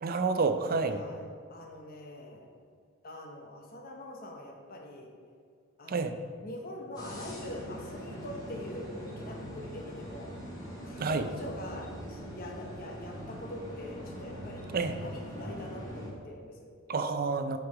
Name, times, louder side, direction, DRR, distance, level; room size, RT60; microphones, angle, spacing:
voice 1, 0.0-1.0 5.9-6.2 11.0-11.3 14.7-15.0 16.9-17.6, right 4 dB, 45° right, 9 dB, 0.5 m, -29 dB
voice 2, 0.9-2.5 3.0-5.1 5.8-6.1 6.4-10.3 10.8-16.7, left 1 dB, 45° left, 0 dB, 0.8 m, -44 dB
sound 1, 6.9-16.1, equal, 20° left, 1.7 m, -42 dB
8.2 x 4.7 x 4.9 m, 2.1 s
head